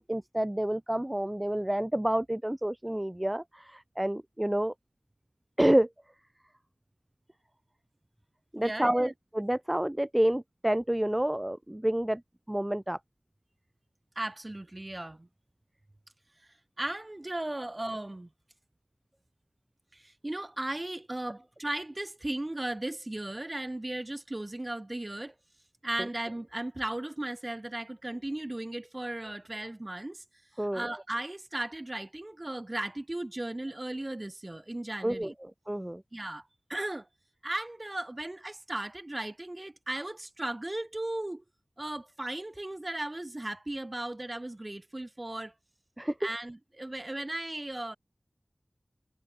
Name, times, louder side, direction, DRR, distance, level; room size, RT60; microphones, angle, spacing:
voice 1, 0.0-4.7 5.6-5.9 8.5-12.2 12.5-13.0 26.0-26.1 30.6-30.9 35.0-36.0 46.0-46.2, right 1 dB, 15° right, 0.4 m, -29 dB
voice 2, 8.6-9.1 14.2-15.3 16.8-18.3 19.9-25.3 25.8-30.2 30.7-35.3 36.1-37.1 37.4-41.4 41.8-45.5 46.2-48.0, right 1 dB, 35° right, 2.8 m, -36 dB
wide cardioid pair, 40°, 0 cm